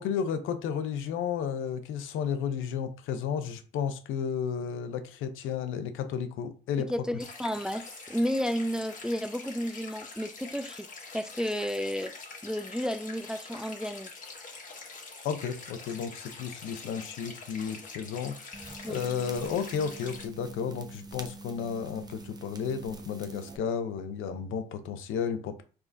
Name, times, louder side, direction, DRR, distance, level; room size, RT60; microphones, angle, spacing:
voice 1, 0.0-6.9 15.2-25.6, left 7 dB, 90° left, 0.7 m, -33 dB
voice 2, 6.9-10.9 11.1-12.1 12.4-14.1 18.8-19.0, equal, 5° right, 0.3 m, -32 dB
sound 1, 7.2-20.2, left 4 dB, 40° left, 1.5 m, -45 dB
sound 2, 18.5-23.6, right 3 dB, 20° right, 0.8 m, -45 dB
5.0 x 3.7 x 2.6 m
cardioid pair, 90°, 20 cm